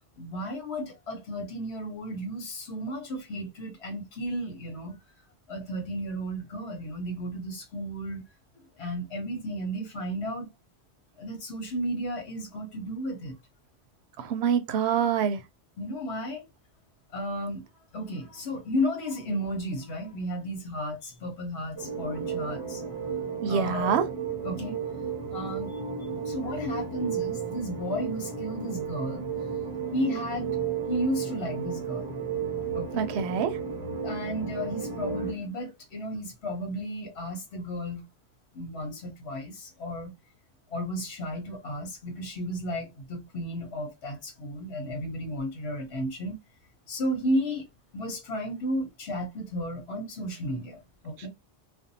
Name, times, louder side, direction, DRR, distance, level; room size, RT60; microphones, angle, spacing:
voice 1, 0.2-4.9 5.5-8.2 8.5-10.5 11.2-13.4 15.8-16.5 17.1-17.7 17.9-23.9 24.4-24.8 25.3-25.8 26.2-29.3 29.9-30.5 30.9-32.1 32.7-33.1 34.0-38.0 38.5-40.1 40.7-46.4 46.9-47.7 47.9-51.3, equal, 80° left, 1.1 m, -33 dB
voice 2, 14.2-15.4 23.4-24.1 32.9-33.6 51.2-51.3, right 7 dB, 80° right, 0.8 m, -26 dB
sound 1, 21.8-35.3, right 6 dB, 20° right, 0.8 m, -33 dB
2.6 x 2.2 x 2.6 m
omnidirectional pair, 1.1 m